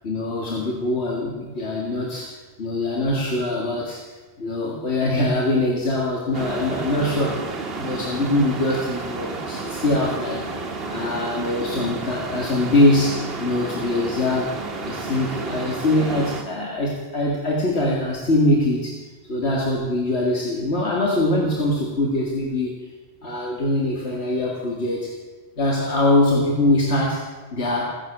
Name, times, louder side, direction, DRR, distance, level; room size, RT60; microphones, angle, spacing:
voice 1, 0.0-2.3 2.6-4.0 4.4-10.4 10.9-14.5 14.8-19.0 19.3-22.8 23.2-25.1 25.6-27.8, left 1 dB, 85° left, -2 dB, 2.3 m, -23 dB
sound 1, 6.3-16.4, right 3 dB, 65° right, 1.6 m, -31 dB
16.5 x 10.0 x 7.4 m, 1.2 s
omnidirectional pair, 1.1 m